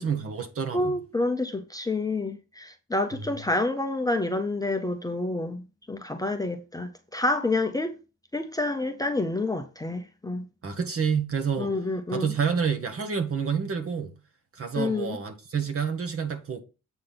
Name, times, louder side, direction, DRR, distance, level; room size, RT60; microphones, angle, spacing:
voice 1, 0.0-1.0 10.6-11.7 12.1-14.1 14.6-16.6, right 6 dB, 45° right, 1.3 m, -28 dB
voice 2, 0.7-8.0 8.3-10.5 11.6-12.3 14.7-15.2, left 2 dB, 10° left, 0.6 m, -28 dB
7.9 x 3.5 x 5.8 m
cardioid pair, 125°, 32 cm